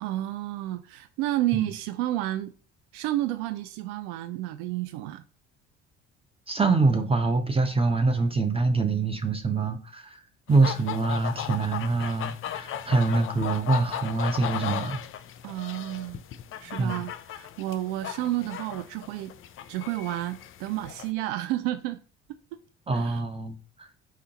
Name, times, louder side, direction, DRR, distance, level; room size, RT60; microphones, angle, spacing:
voice 1, 0.0-2.5 2.9-5.2 15.4-16.2 16.6-19.3 19.7-22.0 22.5-22.6 22.9-23.2, right 15 dB, 70° right, 0.4 m, -31 dB
voice 2, 6.5-10.2 10.5-15.0 16.8-17.0 22.9-23.9, right 3 dB, 15° right, 0.8 m, -25 dB
sound 1, 10.5-21.1, left 10 dB, 40° left, 0.5 m, -36 dB
4.5 x 3.6 x 2.9 m
hypercardioid pair, 55°, 33 cm